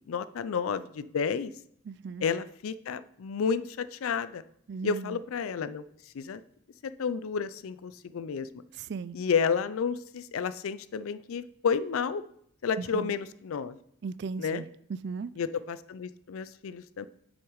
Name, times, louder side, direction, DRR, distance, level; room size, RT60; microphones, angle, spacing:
voice 1, 0.1-1.5 2.2-4.4 4.8-5.8 6.1-6.4 6.8-8.5 9.1-12.2 12.6-13.8 14.4-14.6 15.4-17.1, left 6 dB, 80° left, 15 dB, 0.4 m, -31 dB
voice 2, 1.9-2.3 4.7-5.2 8.7-9.2 12.8-13.1 14.0-15.3, right 5 dB, 50° right, 16 dB, 0.3 m, -37 dB
7.2 x 6.2 x 4.7 m, 0.70 s
head